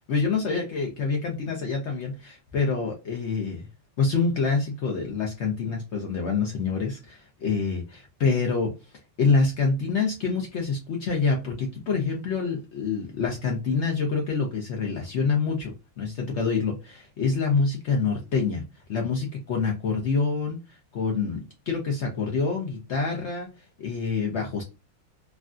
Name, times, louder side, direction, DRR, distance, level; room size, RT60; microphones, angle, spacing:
voice 1, 0.1-3.7 4.0-8.8 9.2-18.6 18.9-24.6, left 4 dB, 85° left, 0.6 m, -26 dB
3.2 x 2.5 x 2.4 m
omnidirectional pair, 2.1 m